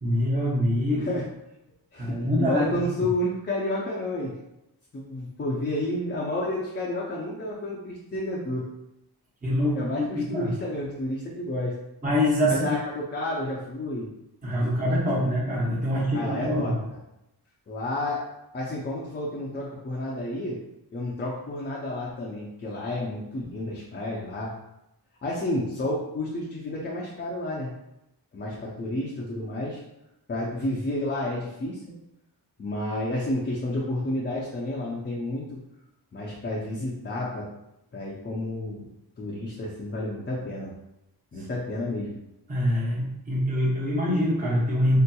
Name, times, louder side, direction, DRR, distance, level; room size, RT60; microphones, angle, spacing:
voice 1, 0.0-1.2 1.9-2.7 3.0-3.1 9.4-10.5 12.0-12.8 14.4-16.8 41.4-41.5 42.5-45.0, equal, 20° right, -6 dB, 0.8 m, -25 dB
voice 2, 1.9-4.3 4.9-8.6 9.7-11.7 12.5-14.1 14.8-14.9 15.9-16.7 17.7-18.2 18.5-20.6 20.9-24.5 25.2-27.7 28.3-29.8 30.3-31.8 32.6-35.6 36.1-37.5 37.9-38.9 39.2-40.7 41.3-42.2, left 1 dB, 30° left, -4 dB, 0.4 m, -30 dB
3.5 x 2.8 x 2.2 m, 0.88 s
wide cardioid pair, 155°, 41 cm